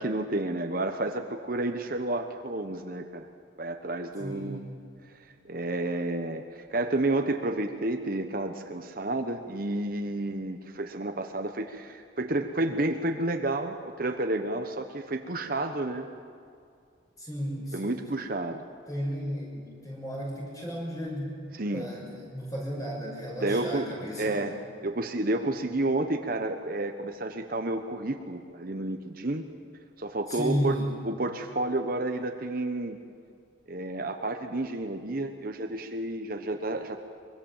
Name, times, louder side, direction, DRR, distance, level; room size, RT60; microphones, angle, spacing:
voice 1, 0.0-3.3 3.6-4.6 5.2-16.1 17.7-18.6 21.5-21.9 23.4-23.9 24.2-29.5 30.0-30.8 31.0-33.0 33.7-37.0, right 2 dB, 45° right, 6 dB, 1.1 m, -30 dB
voice 2, 4.2-4.6 17.2-18.1 18.9-21.4 21.7-24.5 30.3-30.9, equal, 20° left, -2 dB, 6.2 m, -34 dB
24.0 x 23.0 x 7.3 m, 2.3 s
head